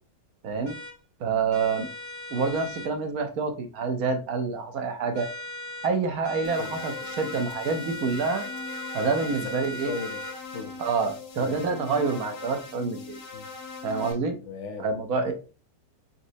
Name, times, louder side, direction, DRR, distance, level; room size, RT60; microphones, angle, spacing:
voice 1, 0.4-0.8 1.2-1.9 2.3-5.3 5.8-8.5 8.9-9.9 10.8-13.2 13.8-14.4 14.8-15.3, right 4 dB, 65° right, 1.1 m, -27 dB
sound 1, 0.7-0.9 1.5-2.9 5.1-5.9 6.2-10.4, left 1 dB, 25° left, 0.4 m, -38 dB
sound 2, 6.4-14.1, left 4 dB, 85° left, 1.8 m, -41 dB
voice 2, 9.5-10.2 10.5-10.8 11.4-11.6 13.3-13.5 14.4-14.9 15.3-15.4, left 4 dB, 70° left, 0.7 m, -37 dB
4.2 x 3.8 x 2.6 m
omnidirectional pair, 1.9 m